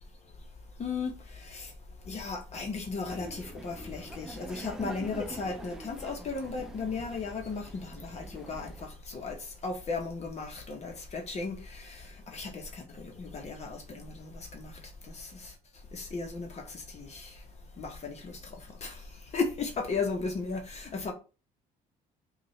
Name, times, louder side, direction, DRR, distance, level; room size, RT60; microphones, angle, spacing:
voice 1, 0.8-1.7 2.1-9.4 9.6-14.7 15.1-15.5 15.9-17.3 17.8-19.0 19.3-21.1, left 4 dB, 40° left, 1.0 m, -36 dB
Laughter, 3.1-8.9, right 1 dB, 5° right, 0.8 m, -44 dB
5.2 x 2.5 x 3.2 m
cardioid pair, 110°, 17 cm